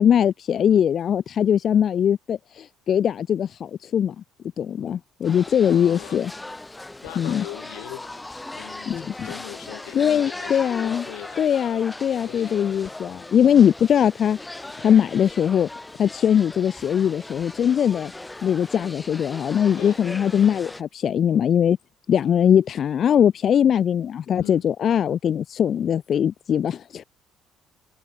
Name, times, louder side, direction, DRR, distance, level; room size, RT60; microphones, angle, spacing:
voice 1, 0.0-4.2 4.6-6.3 7.2-7.4 8.9-9.3 9.9-11.0 11.4-15.7 16.0-18.1 18.4-21.8 22.1-27.0, left 8 dB, 50° left, 0.3 m, -21 dB
sound 1, 5.2-20.8, left 2 dB, 10° left, 1.2 m, -39 dB
voice 2, 5.7-6.2 7.0-11.5 12.2-12.9 19.8-20.0 24.3-24.7, left 29 dB, 90° left, 3.5 m, -41 dB
supercardioid pair, 90°, 0 cm